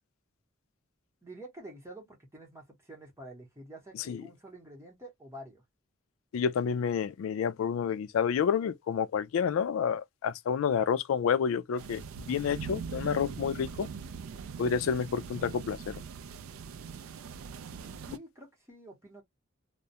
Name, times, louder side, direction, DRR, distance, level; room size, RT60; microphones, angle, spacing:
voice 1, 1.2-5.6 17.7-19.2, right 1 dB, 15° right, 0.9 m, -48 dB
voice 2, 6.3-13.9 14.6-15.9, left 7 dB, 70° left, 0.3 m, -29 dB
sound 1, 11.8-18.2, right 6 dB, 75° right, 0.4 m, -42 dB
2.2 x 2.0 x 2.7 m
head